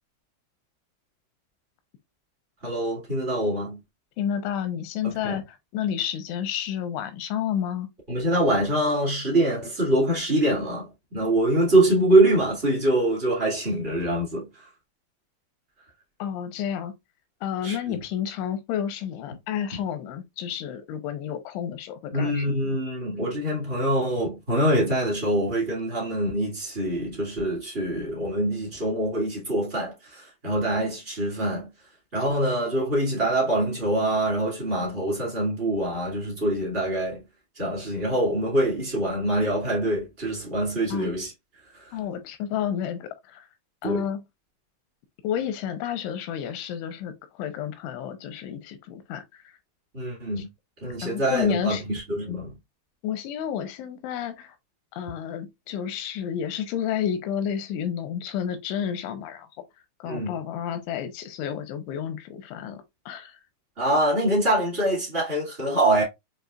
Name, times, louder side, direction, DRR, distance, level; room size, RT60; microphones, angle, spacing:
voice 1, 2.6-3.8 5.0-5.4 8.1-14.7 17.6-18.0 22.1-31.7 32.1-37.2 37.5-41.3 41.7-42.0 43.8-44.1 49.9-50.5 50.8-52.5 60.0-60.4 63.8-66.0, right 1 dB, 55° right, 0.7 m, -24 dB
voice 2, 4.2-7.9 16.2-16.9 17.4-22.7 40.9-41.1 41.9-43.5 43.8-44.2 45.2-49.4 50.4-50.5 51.0-51.8 53.0-54.5 54.9-59.5 60.0-63.4, left 9 dB, 85° left, 3.0 m, -31 dB
7.9 x 2.7 x 2.4 m
omnidirectional pair, 5.6 m